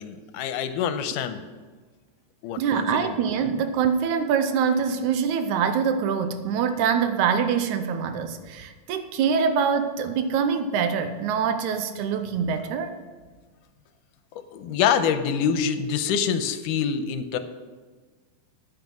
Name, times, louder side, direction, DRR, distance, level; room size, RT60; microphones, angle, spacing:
voice 1, 0.0-1.4 2.4-3.2 14.5-17.4, left 7 dB, 85° left, 10 dB, 2.2 m, -26 dB
voice 2, 2.6-13.0, right 6 dB, 80° right, 9 dB, 2.0 m, -24 dB
9.7 x 9.2 x 6.1 m, 1.4 s
omnidirectional pair, 3.7 m